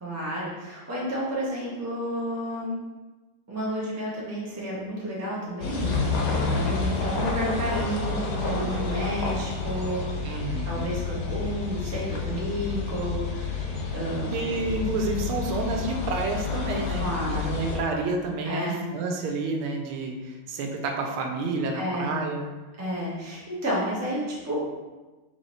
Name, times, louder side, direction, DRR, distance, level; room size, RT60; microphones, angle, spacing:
voice 1, 0.0-2.8 3.5-5.9 6.6-10.1 10.6-13.5 13.9-14.5 17.0-17.6 18.4-18.8 21.7-22.2 22.8-24.6, equal, 15° right, -6 dB, 0.5 m, -31 dB
sound 1, 5.6-17.8, left 4 dB, 80° left, 1.6 m, -29 dB
voice 2, 10.2-10.9 14.3-22.5, right 3 dB, 85° right, 2 dB, 1.5 m, -29 dB
3.9 x 3.3 x 4.0 m, 1.2 s
omnidirectional pair, 2.2 m